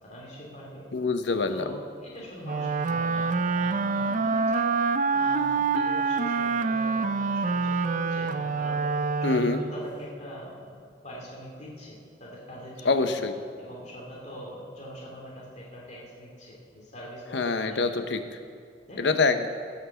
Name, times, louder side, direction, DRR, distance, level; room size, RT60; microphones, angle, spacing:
voice 1, 0.0-0.8 1.5-4.7 5.1-8.8 9.3-10.6 11.0-13.1 13.5-18.1 18.9-19.2, equal, 40° left, -4 dB, 2.5 m, -43 dB
voice 2, 0.9-1.7 9.2-9.6 12.8-13.3 17.3-18.2 19.0-19.5, left 3 dB, 80° left, 8 dB, 0.8 m, -25 dB
Wind instrument woodwind instrument, 2.4-9.8, right 4 dB, 45° right, 0.5 m, -26 dB
17.0 x 6.0 x 6.9 m, 2.2 s
head